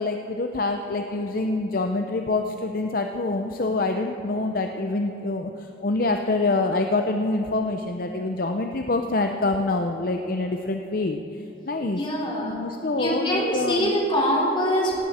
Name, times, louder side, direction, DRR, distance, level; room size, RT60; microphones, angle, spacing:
voice 1, 0.0-12.0 12.4-13.9, left 2 dB, 50° left, 4 dB, 0.7 m, -26 dB
voice 2, 11.9-12.6 13.0-14.9, equal, 30° left, -3 dB, 3.3 m, -24 dB
18.0 x 17.0 x 4.3 m, 2.9 s
head